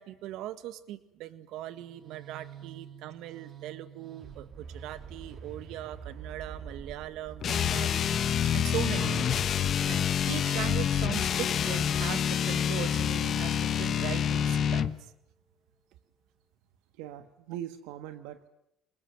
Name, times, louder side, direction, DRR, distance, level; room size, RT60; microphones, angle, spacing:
voice 1, 0.0-8.0 8.5-9.4 9.9-14.9, right 13 dB, 70° right, 13 dB, 1.8 m, -39 dB
sound 1, 1.7-13.5, right 7 dB, 45° right, 2.7 m, -47 dB
sound 2, 7.4-15.0, left 9 dB, 45° left, 1.1 m, -27 dB
Acoustic guitar / Strum, 8.9-13.2, left 1 dB, 5° left, 7.4 m, -48 dB
voice 2, 17.0-18.5, right 11 dB, 90° right, 9 dB, 1.5 m, -41 dB
26.0 x 20.5 x 9.1 m, 0.80 s
cardioid pair, 110°, 0 cm